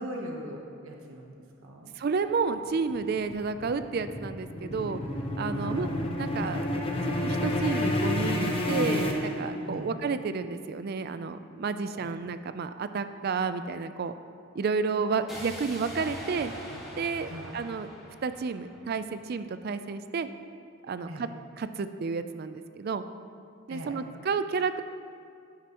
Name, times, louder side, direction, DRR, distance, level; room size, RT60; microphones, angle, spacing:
voice 1, 0.0-1.3 1.6-1.9 5.6-5.9 9.7-10.0 11.9-12.1 17.2-17.6 21.1-21.3 23.7-24.0, equal, 80° right, 0 dB, 1.0 m, -40 dB
voice 2, 2.0-5.0 5.4-5.9 6.2-6.6 7.1-14.1 14.5-16.5 17.0-17.9 18.2-20.3 20.9-21.3 21.6-23.0 23.7-24.8, right 5 dB, 45° right, 11 dB, 0.3 m, -31 dB
sound 1, 2.7-9.9, left 1 dB, 25° left, 0.7 m, -30 dB
sound 2, 15.3-19.3, equal, ahead, 2.0 m, -43 dB
9.5 x 9.4 x 3.0 m, 2.4 s
head